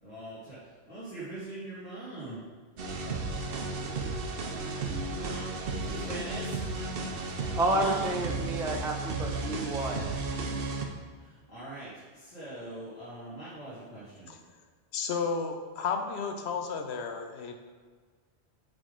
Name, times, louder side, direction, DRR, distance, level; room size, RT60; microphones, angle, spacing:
voice 1, 0.0-2.4 3.7-4.1 4.6-6.6 7.1-8.2 11.2-14.3, right 2 dB, 40° left, -13 dB, 2.0 m, -43 dB
sound 1, 2.8-10.8, right 3 dB, 60° right, 0.9 m, -34 dB
voice 2, 7.6-10.0, right 2 dB, 5° right, 2 dB, 0.3 m, -30 dB
voice 3, 14.9-17.5, left 5 dB, 75° left, 5 dB, 1.0 m, -32 dB
8.9 x 3.7 x 3.7 m, 1.5 s
omnidirectional pair, 1.1 m